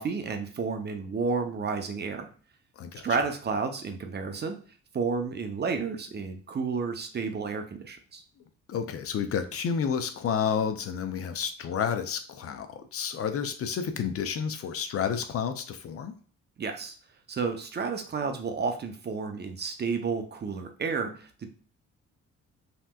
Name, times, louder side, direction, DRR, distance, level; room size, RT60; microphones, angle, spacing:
voice 1, 0.0-2.3 3.0-4.5 4.9-8.2 16.6-17.0 17.3-21.3, right 5 dB, 35° right, 6 dB, 0.5 m, -31 dB
voice 2, 2.8-3.1 8.7-16.1, left 7 dB, 50° left, 9 dB, 0.5 m, -30 dB
3.2 x 2.9 x 2.3 m, 0.43 s
cardioid pair, 90°, 30 cm